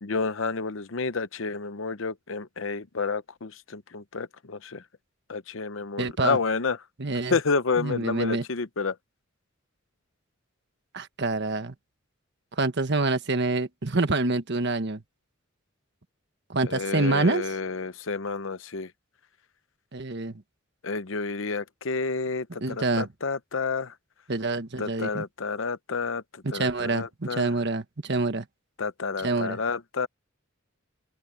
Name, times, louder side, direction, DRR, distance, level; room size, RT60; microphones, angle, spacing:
voice 1, 0.0-4.8 5.3-6.8 7.3-9.0 16.6-18.9 20.8-23.9 24.8-27.5 28.8-30.1, left 4 dB, 65° left, 0.8 m, -30 dB
voice 2, 6.0-6.4 7.0-7.4 7.8-8.4 10.9-11.7 12.6-15.0 16.5-17.5 19.9-20.3 22.6-23.1 24.3-25.2 26.4-28.4 29.2-29.6, right 2 dB, 55° right, 1.4 m, -26 dB
open air
head